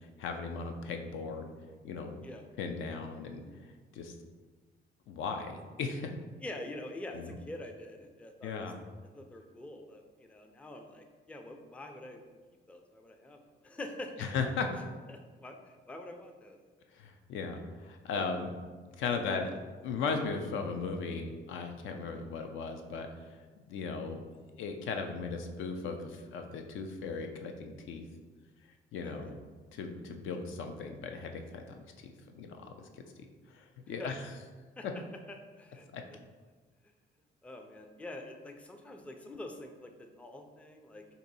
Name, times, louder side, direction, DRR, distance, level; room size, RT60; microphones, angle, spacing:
voice 1, 0.2-1.5 1.8-2.3 2.6-3.4 3.9-4.1 5.1-6.1 7.1-7.3 8.4-8.7 14.2-14.7 16.9-18.5 19.0-19.5 19.8-23.1 23.7-24.2 24.6-28.0 28.9-29.4 29.7-31.6 32.0-32.9 33.5-34.3 35.9-36.0, left 4 dB, 80° left, 5 dB, 0.4 m, -37 dB
voice 2, 6.4-8.6 9.1-12.2 12.7-14.1 15.1-16.6 18.1-18.3 19.3-19.4 29.0-29.3 34.0-34.2 34.8-34.9 35.6-35.9 37.4-41.1, left 1 dB, 5° left, 4 dB, 0.3 m, -45 dB
2.7 x 2.6 x 4.0 m, 1.4 s
cardioid pair, 90°, 20 cm